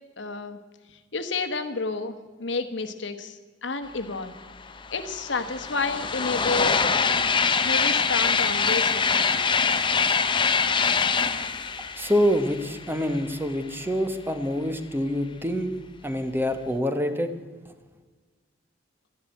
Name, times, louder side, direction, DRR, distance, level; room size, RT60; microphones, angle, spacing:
voice 1, 0.2-0.6 1.1-4.3 4.9-6.8 7.6-9.4, left 3 dB, 65° left, 9 dB, 1.2 m, -30 dB
sound 1, 4.4-4.5 4.7-13.3, left 5 dB, 25° left, 0.7 m, -24 dB
voice 2, 11.9-15.7 16.0-17.3, equal, 10° right, 8 dB, 1.0 m, -26 dB
13.0 x 10.5 x 9.1 m, 1.3 s
head